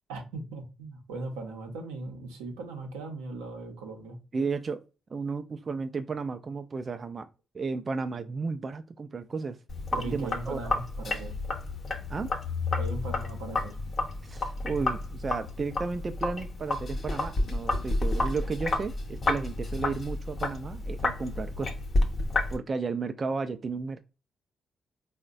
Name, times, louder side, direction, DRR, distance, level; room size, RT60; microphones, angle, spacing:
voice 1, 0.1-4.2 9.9-11.3 12.8-13.8, right 3 dB, 90° right, 0.6 m, -38 dB
voice 2, 4.3-4.8 5.1-7.3 7.5-9.6 10.0-10.6 12.1-12.3 14.2-21.7 22.5-24.0, right 4 dB, 45° right, 0.3 m, -33 dB
Sink (filling or washing), 9.7-22.6, left 2 dB, 50° left, 0.7 m, -31 dB
3.7 x 2.1 x 2.5 m
hypercardioid pair, 45°, 0 cm